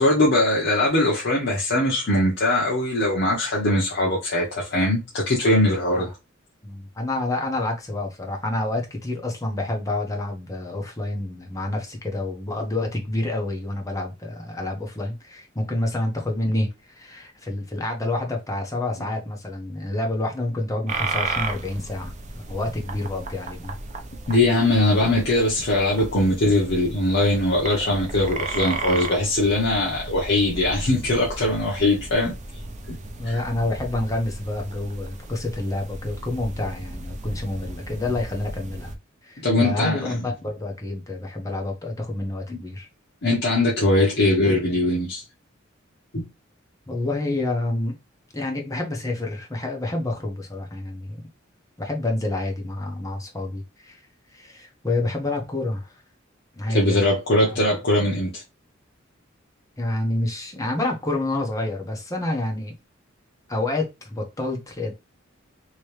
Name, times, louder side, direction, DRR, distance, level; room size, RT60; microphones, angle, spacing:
voice 1, 0.0-6.1 24.3-32.3 32.9-33.0 33.2-33.4 39.4-40.1 42.5-42.6 43.2-45.2 46.1-46.2 56.7-58.4, left 1 dB, 55° left, 1.0 m, -21 dB
voice 2, 6.6-23.7 33.2-38.9 39.2-42.9 46.9-47.9 48.3-51.2 51.8-54.0 54.3-55.9 56.6-57.0 57.4-57.7 59.8-62.7 63.5-64.9, left 2 dB, 15° left, 0.9 m, -28 dB
sound 1, 20.9-39.0, right 3 dB, 35° right, 0.5 m, -34 dB
3.0 x 3.0 x 3.2 m
head